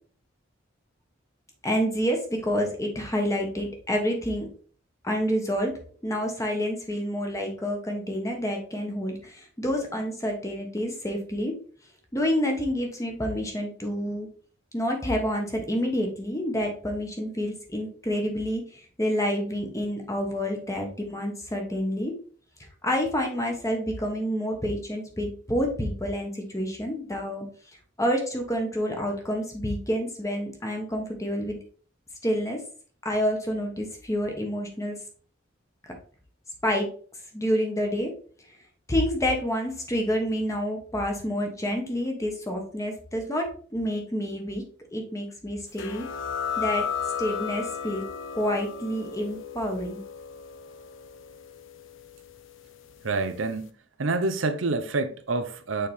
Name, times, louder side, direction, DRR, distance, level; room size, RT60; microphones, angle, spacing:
voice 1, 1.6-4.5 5.0-5.7 6.0-11.5 12.1-14.3 14.7-18.6 19.0-22.1 22.8-27.4 28.0-31.6 32.2-32.6 33.0-35.0 36.6-36.9 37.3-38.1 38.9-43.5 43.7-44.6 44.9-46.1 46.6-46.8 47.2-48.0 48.3-50.0, equal, 15° left, 1.3 m, -28 dB
sound 1, 45.8-53.0, left 7 dB, 85° left, 0.6 m, -34 dB
voice 2, 53.0-53.7 54.0-55.9, right 3 dB, 85° right, 0.7 m, -27 dB
6.5 x 4.3 x 3.5 m
head